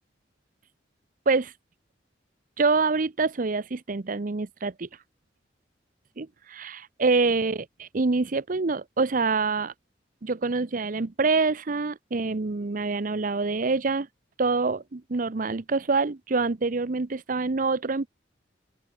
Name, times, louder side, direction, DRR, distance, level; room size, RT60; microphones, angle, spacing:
voice 1, 2.6-4.9 6.2-9.7 10.2-14.1 14.4-18.1, right 4 dB, 50° right, 0.7 m, -26 dB
open air
head